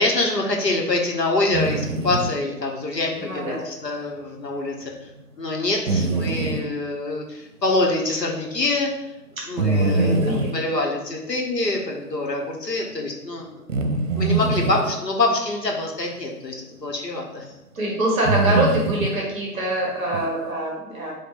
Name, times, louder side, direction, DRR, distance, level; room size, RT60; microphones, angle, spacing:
voice 1, 0.0-4.9 5.4-8.9 9.5-13.6 14.2-17.5, left 2 dB, 80° left, 0 dB, 1.3 m, -25 dB
sound 1, 1.5-2.3 5.9-6.6 9.6-10.6 13.7-15.0 16.9-17.0 18.2-19.2 20.1-20.2, right 2 dB, 55° right, 0.7 m, -23 dB
voice 2, 3.2-3.6 9.7-10.9 17.7-21.1, right 1 dB, 5° right, -4 dB, 1.1 m, -25 dB
4.2 x 2.6 x 4.6 m, 0.93 s
figure-of-eight pair, 150°, 49 cm